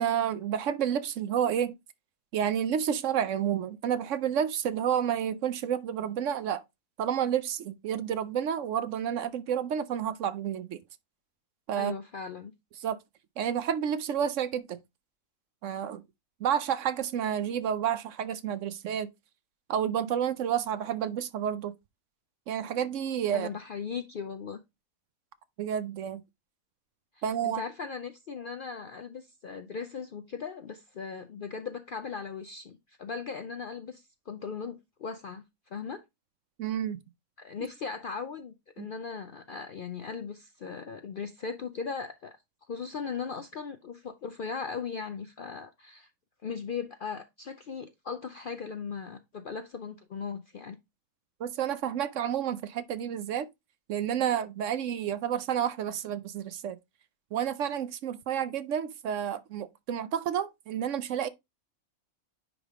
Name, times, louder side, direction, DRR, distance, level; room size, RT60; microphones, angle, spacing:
voice 1, 0.0-1.8 2.3-6.6 7.0-10.8 11.7-11.9 12.8-13.0 13.4-14.8 15.6-16.0 16.4-19.1 19.7-21.7 22.5-23.5 25.6-26.2 27.2-27.6 36.6-37.0 38.8-38.9 51.4-53.5 53.9-56.8 57.3-61.3, right 9 dB, 70° right, 0.9 m, -30 dB
voice 2, 11.7-12.5 23.3-24.6 27.1-36.0 37.4-42.4 42.7-46.1 46.4-50.8, left 5 dB, 60° left, 0.5 m, -38 dB
9.9 x 3.4 x 3.5 m
omnidirectional pair, 1.5 m